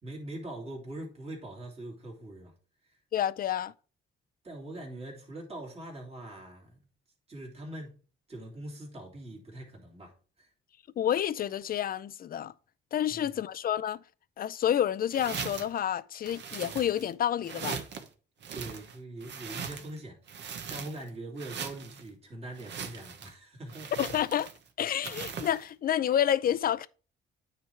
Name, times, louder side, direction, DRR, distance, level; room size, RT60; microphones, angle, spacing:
voice 1, 0.0-2.5 2.9-3.0 4.4-6.8 7.3-8.0 8.3-10.5 13.1-13.4 18.5-23.9, right 1 dB, 30° right, 2.7 m, -43 dB
voice 2, 3.1-3.7 11.0-12.5 12.9-14.0 14.4-17.8 24.0-24.5 24.8-26.9, left 10 dB, 50° left, 0.4 m, -29 dB
sound 1, 15.1-15.8 16.2-17.1 17.4-18.1 18.4-20.0 20.3-21.1 21.4-22.0 22.6-23.3 23.7-24.7 25.0-25.6, right 6 dB, 60° right, 1.1 m, -40 dB
9.0 x 3.4 x 4.5 m
cardioid pair, 90°, 20 cm